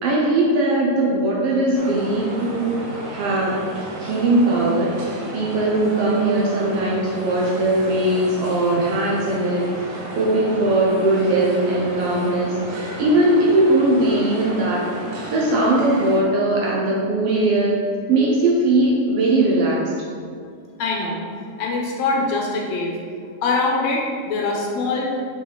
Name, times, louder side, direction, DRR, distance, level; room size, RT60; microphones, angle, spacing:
voice 1, 0.0-2.8 3.1-3.6 4.0-4.9 5.3-9.6 9.9-12.5 13.0-14.9 15.3-17.7 18.1-19.9, right 2 dB, 70° right, -3 dB, 1.6 m, -19 dB
sound 1, 1.7-16.2, right 1 dB, 90° right, 2.5 m, -34 dB
voice 2, 20.8-21.2 21.6-22.9 23.4-25.2, left 3 dB, 70° left, -1 dB, 2.0 m, -23 dB
6.2 x 5.4 x 3.9 m, 2.2 s
omnidirectional pair, 3.3 m